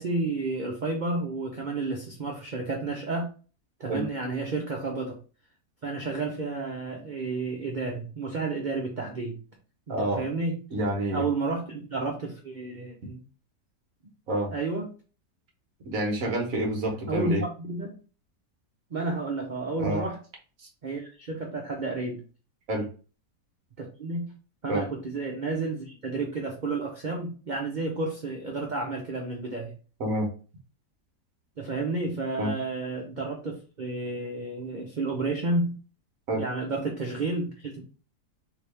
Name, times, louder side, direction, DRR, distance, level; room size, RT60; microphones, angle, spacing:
voice 1, 0.0-3.3 3.8-5.2 5.8-9.4 9.9-10.6 11.1-13.2 14.5-14.9 17.1-18.0 18.9-20.2 20.8-22.2 23.8-24.3 24.6-29.7 31.6-35.8 36.3-37.8, right 3 dB, 80° right, 0 dB, 0.4 m, -31 dB
voice 2, 9.9-10.2 10.7-11.2 14.3-14.5 15.8-17.4 19.8-20.0 22.7-22.9 24.7-24.8 30.0-30.3 32.4-32.5 36.3-36.4, right 1 dB, 55° right, 1 dB, 1.4 m, -28 dB
3.3 x 2.9 x 3.3 m, 0.37 s
omnidirectional pair, 1.8 m